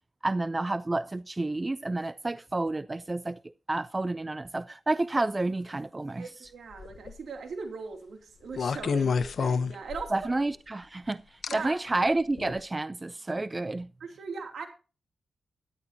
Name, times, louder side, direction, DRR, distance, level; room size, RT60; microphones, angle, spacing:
voice 1, 0.2-3.4 3.7-6.3 10.1-13.9, right 2 dB, 30° right, 0.5 m, -30 dB
voice 2, 6.2-10.3 11.5-11.8 14.0-14.7, right 4 dB, 80° right, 2.7 m, -39 dB
sound 1, 6.7-7.2 8.5-10.3 11.4-11.5 12.4-12.6, left 5 dB, 70° left, 0.8 m, -28 dB
13.5 x 11.5 x 2.8 m
cardioid pair, 55°, 0 cm